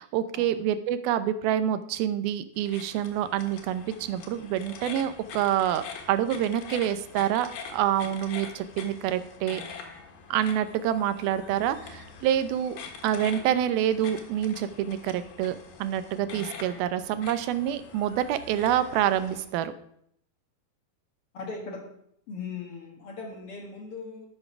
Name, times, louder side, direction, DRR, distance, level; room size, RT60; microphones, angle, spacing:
voice 1, 0.0-9.6 10.3-12.8 13.0-19.7, right 10 dB, 85° right, 12 dB, 2.7 m, -27 dB
sound 1, 2.6-19.4, left 5 dB, 85° left, 3.5 m, -44 dB
voice 2, 21.3-22.0 22.3-24.3, left 4 dB, 50° left, 1 dB, 2.1 m, -39 dB
11.0 x 8.8 x 6.1 m, 0.70 s
omnidirectional pair, 4.2 m